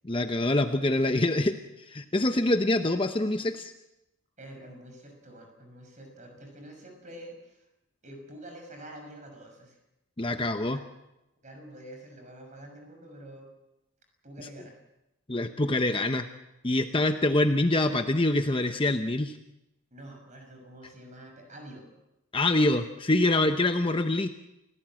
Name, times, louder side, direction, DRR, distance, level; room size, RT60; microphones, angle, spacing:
voice 1, 0.0-1.5 1.9-3.7 10.2-10.8 15.3-16.3 16.6-19.4 22.3-24.3, left 2 dB, 25° left, 7 dB, 0.8 m, -25 dB
voice 2, 4.4-7.7 8.0-9.8 10.7-10.8 11.4-13.5 14.2-14.7 19.9-21.9, right 1 dB, 35° right, 3 dB, 6.1 m, -47 dB
29.0 x 17.0 x 7.6 m, 0.91 s
head